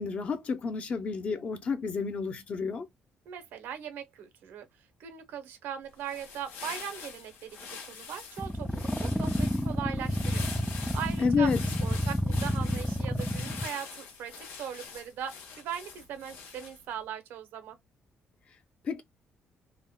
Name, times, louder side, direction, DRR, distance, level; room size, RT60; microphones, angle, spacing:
voice 1, 0.0-2.9 11.2-11.6 18.8-19.0, left 5 dB, 40° left, 0.6 m, -30 dB
voice 2, 3.3-4.7 5.0-11.5 11.8-17.8, right 9 dB, 85° right, 0.8 m, -40 dB
sound 1, 5.9-16.9, left 6 dB, 85° left, 0.9 m, -44 dB
sound 2, 8.4-13.7, equal, ahead, 0.3 m, -29 dB
3.5 x 2.1 x 2.2 m
cardioid pair, 145°, 3 cm